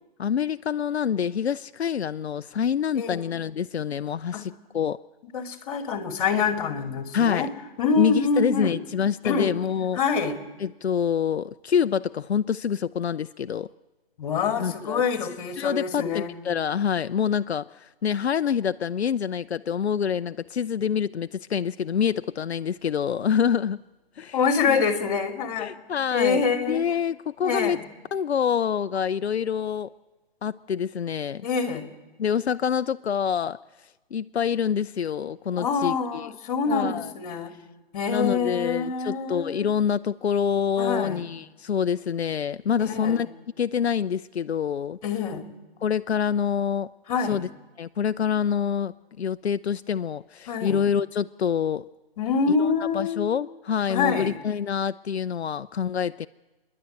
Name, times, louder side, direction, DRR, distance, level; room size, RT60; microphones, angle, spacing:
voice 1, 0.2-5.0 7.1-7.5 8.0-10.0 10.6-13.7 14.6-15.0 15.6-23.8 24.2-24.4 24.7-24.8 25.6-27.8 28.1-29.9 30.4-31.5 32.2-33.6 34.1-36.3 36.7-37.1 38.1-43.3 43.6-45.0 45.8-46.9 47.2-47.5 47.8-51.8 52.6-56.3, left 7 dB, 90° left, 12 dB, 0.6 m, -26 dB
voice 2, 5.3-7.5 7.8-8.8 9.2-9.5 9.9-10.4 14.2-16.3 24.3-25.7 26.1-26.8 27.4-27.8 31.4-31.9 35.6-37.5 37.9-39.7 40.8-41.2 42.8-43.3 45.0-45.4 47.1-47.4 50.5-50.8 52.2-53.2 53.9-54.4, left 5 dB, 35° left, 7 dB, 2.4 m, -26 dB
28.0 x 11.0 x 9.1 m, 1.1 s
hypercardioid pair, 155°, 31 cm